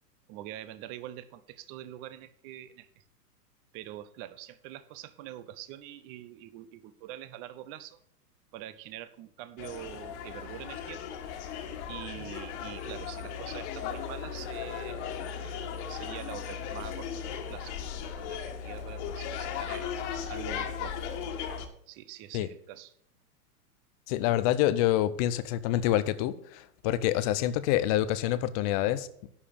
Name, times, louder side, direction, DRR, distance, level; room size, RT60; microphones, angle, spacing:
voice 1, 0.3-3.0 3.7-8.0 8.5-11.0 11.9-19.9 20.3-21.0 21.9-22.9, right 13 dB, 30° right, 14 dB, 0.7 m, -45 dB
sound 1, 9.6-21.7, left 7 dB, 45° left, 1.8 m, -37 dB
voice 2, 24.1-29.3, left 13 dB, 25° left, 14 dB, 0.5 m, -27 dB
11.5 x 5.0 x 8.4 m, 0.70 s
hypercardioid pair, 130°, 47 cm